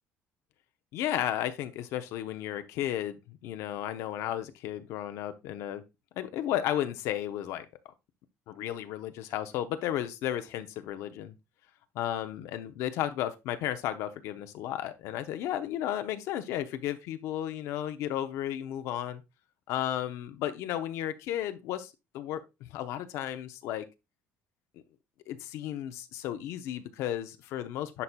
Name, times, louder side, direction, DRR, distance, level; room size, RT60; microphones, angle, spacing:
voice 1, 0.9-5.8 6.2-7.7 8.5-11.3 11.9-19.2 19.7-22.4 22.7-23.8 25.3-28.0, left 12 dB, 70° left, 0.7 m, -33 dB
11.0 x 4.3 x 2.2 m
cardioid pair, 145°, 5 cm